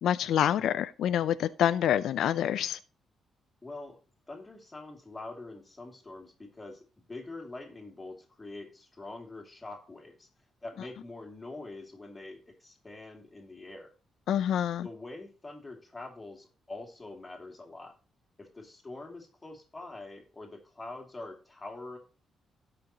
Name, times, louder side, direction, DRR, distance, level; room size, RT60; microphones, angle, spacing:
voice 1, 0.0-2.8 14.3-14.9, left 10 dB, 75° left, 0.5 m, -27 dB
voice 2, 3.6-4.0 4.3-10.3 10.6-13.9 14.8-17.9 18.4-22.0, left 2 dB, 15° left, 2.4 m, -44 dB
17.5 x 5.8 x 2.9 m
cardioid pair, 160°, 0 cm